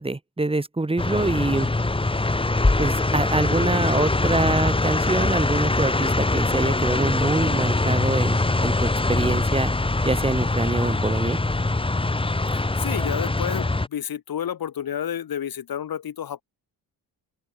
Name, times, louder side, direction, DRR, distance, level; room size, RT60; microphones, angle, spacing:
voice 1, 0.0-1.7 2.8-9.7 10.0-11.4, right 2 dB, 15° right, 2.9 m, -25 dB
sound 1, 1.0-13.9, left 2 dB, 15° left, 2.4 m, -23 dB
voice 2, 12.5-16.4, left 9 dB, 60° left, 3.7 m, -30 dB
open air
cardioid pair, 125°, 41 cm